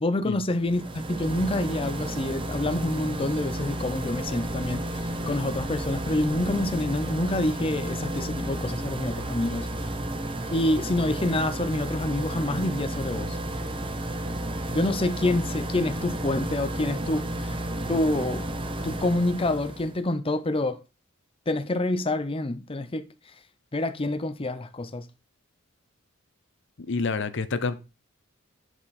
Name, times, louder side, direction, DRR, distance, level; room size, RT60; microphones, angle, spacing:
voice 1, 0.0-9.7 10.5-13.4 14.7-17.6 17.9-18.4 18.8-20.8 21.5-23.1 23.7-25.0, left 1 dB, 25° left, 0.7 m, -27 dB
sound 1, 0.6-20.0, right 1 dB, 25° right, 0.9 m, -32 dB
voice 2, 26.9-27.8, left 4 dB, 60° left, 0.7 m, -27 dB
11.0 x 4.6 x 4.1 m
head